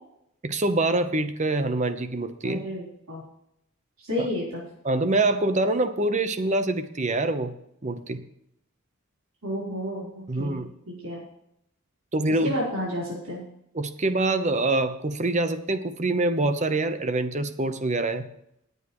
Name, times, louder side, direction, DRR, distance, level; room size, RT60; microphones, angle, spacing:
voice 1, 0.4-2.6 4.8-7.5 7.8-8.2 10.3-10.7 12.1-12.5 13.7-18.2, right 2 dB, 35° right, 10 dB, 0.9 m, -25 dB
voice 2, 2.4-3.2 4.0-4.6 9.4-10.6 10.9-11.2 12.4-13.4, equal, 80° right, -5 dB, 4.0 m, -31 dB
19.0 x 8.2 x 3.1 m, 0.75 s
head